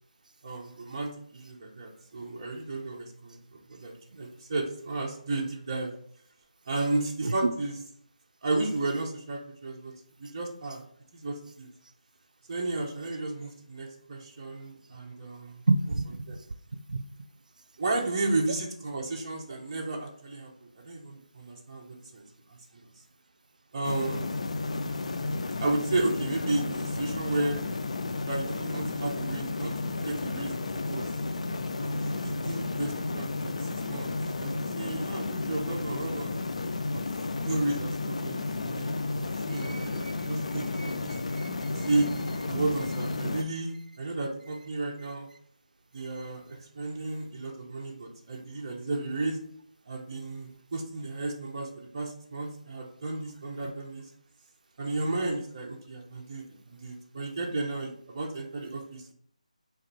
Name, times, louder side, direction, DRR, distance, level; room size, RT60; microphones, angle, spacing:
voice 1, 0.4-5.9 6.7-7.8 8.4-9.9 10.2-10.8 11.1-11.7 12.5-15.6 16.3-16.4 17.8-20.5 20.8-22.9 23.7-24.3 25.6-27.6 28.3-29.7 30.0-31.1 31.8-34.1 34.4-36.3 36.9-37.0 37.4-38.4 38.6-38.9 39.2-41.1 41.7-42.1 42.4-45.3 45.9-49.4 49.9-51.7 51.9-54.0 54.8-59.1, right 2 dB, 30° right, -1 dB, 0.8 m, -33 dB
voice 2, 15.7-16.4 16.7-17.0 39.5-39.8 40.8-41.9, right 3 dB, 80° right, 8 dB, 0.4 m, -30 dB
sound 1, 23.8-43.4, left 3 dB, 55° left, 0.4 m, -32 dB
3.8 x 3.0 x 4.7 m, 0.64 s
figure-of-eight pair, 170°, 4 cm